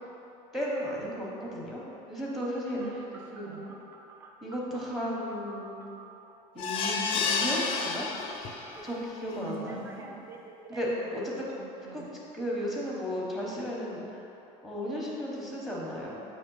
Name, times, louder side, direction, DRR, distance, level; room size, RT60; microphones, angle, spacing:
voice 1, 0.5-2.8 3.3-3.6 4.4-5.9 6.5-8.1 8.8-9.7 10.7-11.5 11.9-12.0 12.3-14.2 14.6-16.1, equal, ahead, -4 dB, 1.0 m, -34 dB
Telephone, 2.8-6.1 7.4-8.9 9.4-11.1, right 4 dB, 20° right, 0.4 m, -49 dB
voice 2, 2.8-3.8 9.3-10.3 11.0-11.3 11.5-12.1 16.0-16.2, right 4 dB, 55° right, -2 dB, 0.8 m, -44 dB
sound 1, 6.6-8.8 9.3-9.4 9.7-9.8, left 4 dB, 40° left, 0.5 m, -30 dB
7.0 x 3.2 x 5.4 m, 2.8 s
cardioid pair, 170°, 14 cm